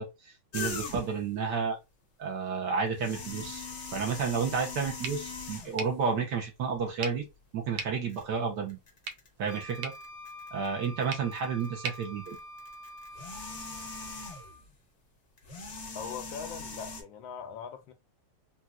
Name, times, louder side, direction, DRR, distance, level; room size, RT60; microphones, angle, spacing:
voice 1, 0.0-1.8 2.2-3.6 3.9-7.3 7.5-8.8 9.4-9.9 10.5-12.4, right 5 dB, 65° right, 1.2 m, -31 dB
sound 1, 0.5-1.3 2.9-5.9 6.8-6.9 8.1-8.2 8.7-11.0 11.3-14.7 15.4-17.0, left 3 dB, 55° left, 0.8 m, -41 dB
sound 2, 5.0-13.1, right 4 dB, 80° right, 1.4 m, -44 dB
Wind instrument woodwind instrument, 9.5-14.6, equal, 35° right, 0.8 m, -46 dB
voice 2, 15.9-17.9, left 7 dB, 75° left, 1.2 m, -41 dB
4.1 x 2.1 x 2.3 m
omnidirectional pair, 2.3 m